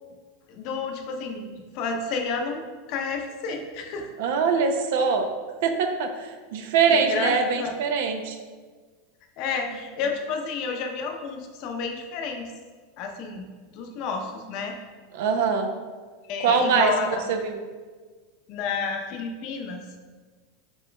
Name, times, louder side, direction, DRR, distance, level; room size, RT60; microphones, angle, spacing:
voice 1, 0.5-4.1 6.9-7.7 9.4-12.5 13.0-13.5 13.7-14.7 16.3-17.2 18.5-19.8, left 4 dB, 55° left, 3 dB, 0.7 m, -30 dB
voice 2, 4.2-5.3 5.6-8.4 15.1-15.7 16.4-17.6, right 5 dB, 70° right, 6 dB, 0.5 m, -23 dB
7.7 x 2.9 x 2.2 m, 1.4 s
supercardioid pair, 125°, 0 cm